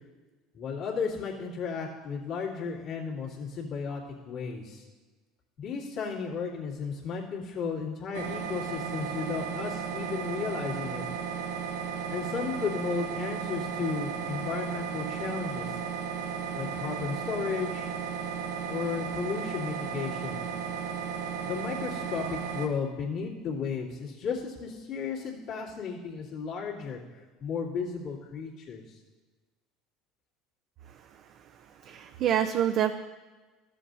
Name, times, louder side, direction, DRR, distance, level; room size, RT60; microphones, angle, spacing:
voice 1, 0.5-4.8 5.6-11.0 12.1-15.8 16.5-17.9 18.7-20.4 21.4-27.0 27.4-29.0, left 5 dB, 60° left, -6 dB, 2.4 m, -34 dB
sound 1, 8.1-22.7, right 7 dB, 90° right, 1.0 m, -34 dB
voice 2, 30.8-32.9, right 10 dB, 55° right, 7 dB, 0.4 m, -29 dB
14.0 x 7.6 x 2.7 m, 1.3 s
hypercardioid pair, 80°, 0 cm